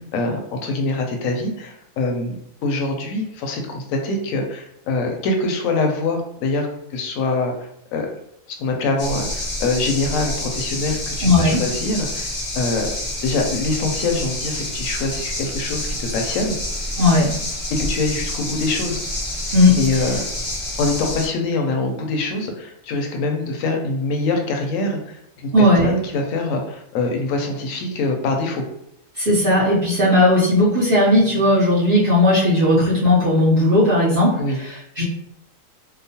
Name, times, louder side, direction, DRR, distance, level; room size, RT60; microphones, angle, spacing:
voice 1, 0.1-8.1 8.6-12.9 13.2-16.5 17.7-19.0 19.8-20.3 20.8-28.6 34.4-34.6, left 3 dB, 80° left, 3 dB, 1.0 m, -24 dB
sound 1, 9.0-21.3, left 1 dB, 60° left, 0.3 m, -28 dB
voice 2, 11.2-11.6 17.0-17.3 19.5-19.8 25.5-25.9 29.2-35.0, left 1 dB, 50° right, -9 dB, 0.8 m, -16 dB
2.9 x 2.1 x 2.7 m, 0.75 s
omnidirectional pair, 1.4 m